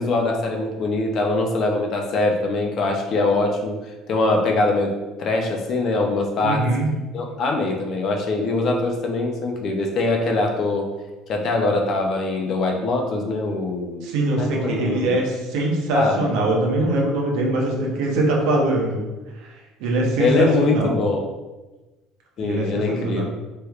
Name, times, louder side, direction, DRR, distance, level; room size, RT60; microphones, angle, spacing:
voice 1, 0.0-6.7 7.1-10.9 11.3-14.0 14.4-15.2 15.9-16.4 20.2-21.3 22.4-23.2, left 2 dB, 35° left, 2 dB, 0.4 m, -23 dB
voice 2, 6.4-6.9 14.0-19.0 19.4-19.5 19.8-21.0 22.4-23.2, right 2 dB, 65° right, -1 dB, 0.7 m, -22 dB
3.2 x 3.1 x 2.3 m, 1.1 s
cardioid pair, 180°, 0 cm